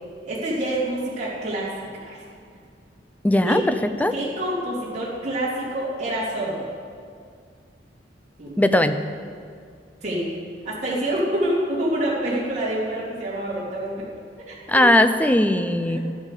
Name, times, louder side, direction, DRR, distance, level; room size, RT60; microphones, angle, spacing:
voice 1, 0.2-1.7 2.0-2.2 3.5-3.6 4.1-6.7 8.4-8.6 10.0-10.3 10.6-14.1 14.4-14.9 15.9-16.0, right 1 dB, 40° right, -8 dB, 2.9 m, -27 dB
voice 2, 3.2-3.7 4.0-4.1 8.6-9.0 14.7-16.0, left 1 dB, 10° left, 10 dB, 0.4 m, -18 dB
12.5 x 11.0 x 4.9 m, 2.2 s
head